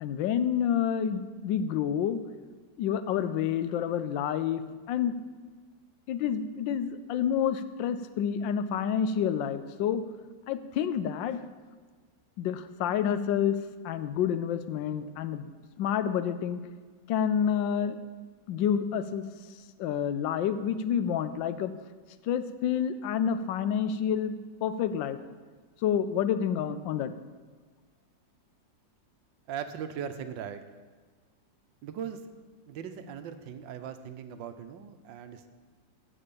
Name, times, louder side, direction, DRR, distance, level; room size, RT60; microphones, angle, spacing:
voice 1, 0.0-2.2 2.8-5.2 6.1-10.0 10.5-11.4 12.4-13.6 13.8-15.5 15.8-16.6 17.1-18.0 18.5-19.2 19.8-21.7 22.2-24.3 24.6-25.2 25.8-27.1, left 8 dB, 85° left, 12 dB, 1.3 m, -28 dB
voice 2, 29.5-30.6 31.8-32.2 32.7-35.5, right 8 dB, 90° right, 9 dB, 1.4 m, -39 dB
8.7 x 7.5 x 6.9 m, 1.5 s
omnidirectional pair, 2.0 m